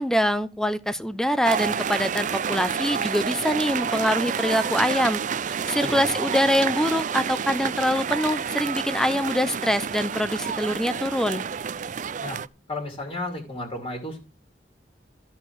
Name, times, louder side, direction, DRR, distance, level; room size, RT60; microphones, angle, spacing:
voice 1, 0.0-5.2 5.5-11.4, equal, 5° left, 14 dB, 0.7 m, -24 dB
sound 1, 1.4-12.5, right 7 dB, 45° right, 0.5 m, -29 dB
voice 2, 12.7-14.2, left 1 dB, 30° left, 2 dB, 2.6 m, -33 dB
13.0 x 4.8 x 7.3 m, 0.31 s
head